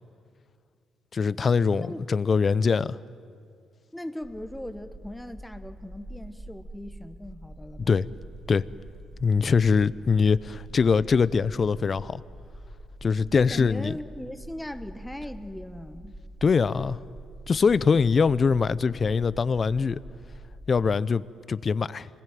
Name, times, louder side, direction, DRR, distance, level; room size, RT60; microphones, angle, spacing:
voice 1, 1.1-3.0 7.9-8.1 8.5-8.6 9.2-12.2 13.0-13.9 16.4-17.0 17.5-20.0 20.7-22.1, left 5 dB, 40° left, 0.6 m, -23 dB
voice 2, 3.9-8.0 13.4-16.2, left 1 dB, 5° left, 1.4 m, -39 dB
sound 1, 4.2-21.0, right 1 dB, 15° right, 3.2 m, -45 dB
26.5 x 21.0 x 9.4 m
cardioid pair, 90°, 0 cm